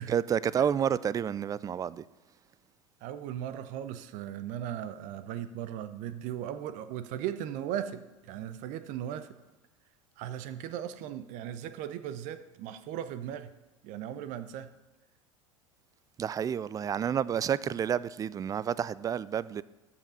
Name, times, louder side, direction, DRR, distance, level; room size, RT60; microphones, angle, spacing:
voice 1, 0.0-2.0 16.2-19.6, right 8 dB, 20° right, 0.3 m, -30 dB
voice 2, 3.0-9.3 10.2-13.5 13.8-14.7, right 10 dB, 50° right, 0.8 m, -37 dB
13.5 x 5.7 x 5.5 m
figure-of-eight pair, 80°, 17 cm